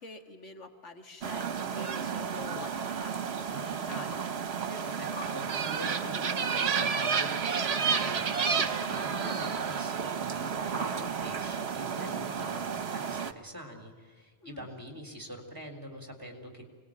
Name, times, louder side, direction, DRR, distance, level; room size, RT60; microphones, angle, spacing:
voice 1, 0.0-4.3 6.0-6.2 9.2-9.5 14.4-14.7, left 3 dB, 90° left, 4 dB, 2.0 m, -46 dB
sound 1, 1.2-13.3, right 6 dB, 65° right, 1.2 m, -31 dB
voice 2, 4.7-16.6, equal, 15° right, 2 dB, 3.7 m, -44 dB
25.0 x 19.5 x 8.7 m, 1.5 s
omnidirectional pair, 1.2 m